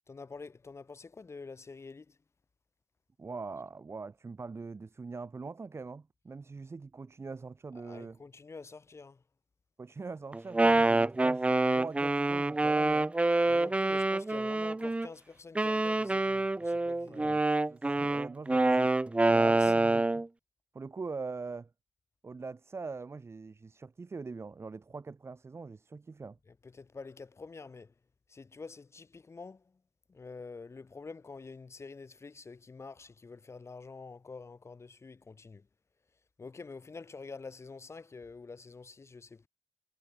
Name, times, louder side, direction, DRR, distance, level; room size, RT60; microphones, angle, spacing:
voice 1, 0.1-2.2 7.8-9.2 13.5-17.3 19.3-19.7 26.6-27.9 28.3-29.6 30.1-35.7 36.4-39.5, left 4 dB, 35° left, 1.1 m, -47 dB
voice 2, 3.2-8.2 9.8-13.1 17.1-18.9 19.3-20.3 20.7-21.7 22.2-26.4, right 4 dB, 35° right, 0.8 m, -43 dB
Wind instrument woodwind instrument, 10.3-15.1 15.5-20.3, right 2 dB, 15° right, 0.5 m, -27 dB
hypercardioid pair, 40°, 8 cm